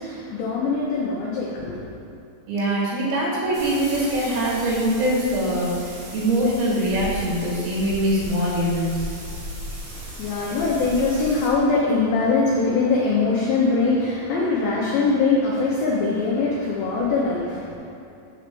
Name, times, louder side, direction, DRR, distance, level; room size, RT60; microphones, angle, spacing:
voice 1, 0.0-1.9 9.9-17.7, left 3 dB, 90° left, -4 dB, 2.0 m, -22 dB
voice 2, 2.5-9.1, right 1 dB, 70° right, -6 dB, 4.1 m, -23 dB
sound 1, 3.5-11.5, equal, 90° right, 1.1 m, -36 dB
7.9 x 4.6 x 6.8 m, 2.6 s
omnidirectional pair, 5.4 m